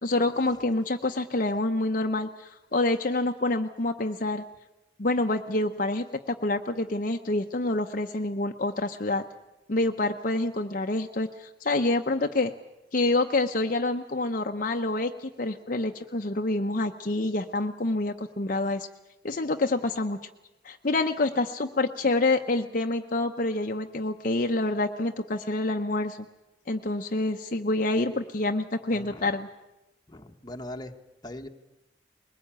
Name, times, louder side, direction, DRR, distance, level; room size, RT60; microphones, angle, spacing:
voice 1, 0.0-4.4 5.0-9.2 9.7-12.5 12.9-18.9 19.2-20.2 20.6-26.2 26.7-29.5, left 2 dB, 45° left, 4 dB, 0.8 m, -27 dB
voice 2, 28.9-29.3 30.1-30.9 31.2-31.5, left 1 dB, 20° left, 4 dB, 1.2 m, -40 dB
21.5 x 20.0 x 8.9 m, 0.97 s
head